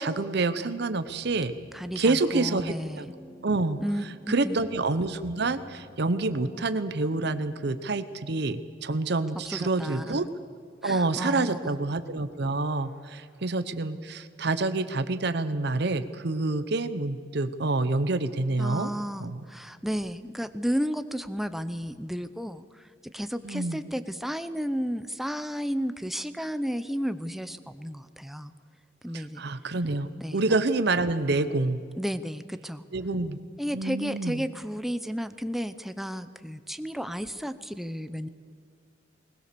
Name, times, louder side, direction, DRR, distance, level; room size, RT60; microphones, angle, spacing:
voice 1, 0.0-1.5 2.0-3.1 3.4-3.8 4.3-10.3 10.8-18.9 19.2-19.4 23.4-23.8 29.1-31.8 32.9-33.4 33.7-34.5, right 3 dB, 65° right, 12 dB, 0.9 m, -27 dB
sound 1, 0.9-7.7, equal, 50° left, 5.0 m, -51 dB
voice 2, 1.7-3.1 3.8-4.1 4.4-4.6 9.4-10.3 10.8-11.8 18.6-22.9 23.1-28.5 29.0-29.4 30.2-30.6 32.0-32.8 33.6-38.3, equal, ahead, 11 dB, 0.7 m, -33 dB
20.5 x 20.0 x 6.9 m, 2.2 s
head